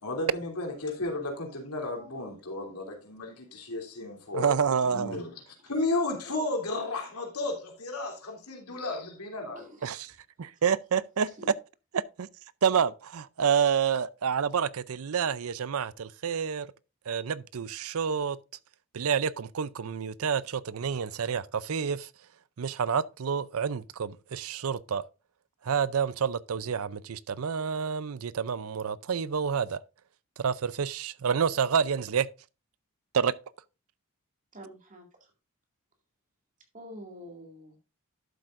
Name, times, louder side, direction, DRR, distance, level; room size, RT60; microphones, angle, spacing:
voice 1, 0.0-4.5 4.8-5.3 5.6-9.6, left 2 dB, 90° left, 3.1 m, -33 dB
voice 2, 1.9-2.4 9.4-9.9 11.4-11.5 34.5-35.3 36.7-37.8, equal, 35° right, 2.3 m, -47 dB
voice 3, 4.3-5.2 9.8-10.1 10.4-11.5 11.9-12.3 12.6-16.7 17.1-18.4 18.9-22.1 22.6-25.0 25.6-29.8 30.4-32.3 33.1-33.3, right 7 dB, 70° right, 0.5 m, -28 dB
12.0 x 7.7 x 2.5 m
head